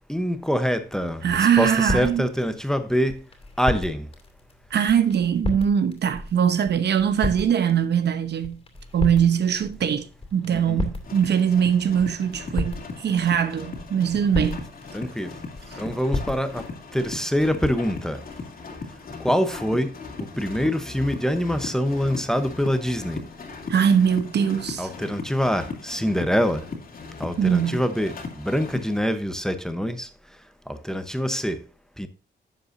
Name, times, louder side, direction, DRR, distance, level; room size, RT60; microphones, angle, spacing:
voice 1, 0.1-3.2 3.6-4.1 10.5-10.8 14.9-15.4 15.8-16.6 16.9-18.2 19.2-19.9 20.2-23.2 24.8-26.7 27.2-30.1 30.7-31.6 32.0-32.1, equal, 5° left, 0.8 m, -25 dB
sound 1, 0.9-16.7, left 2 dB, 30° left, 2.5 m, -35 dB
voice 2, 1.2-2.3 4.7-8.6 8.9-14.7 23.7-24.9 27.4-27.8, right 8 dB, 70° right, 0.9 m, -22 dB
sound 2, 11.0-29.0, left 4 dB, 55° left, 2.4 m, -38 dB
11.5 x 7.6 x 2.6 m
wide cardioid pair, 140°, 18 cm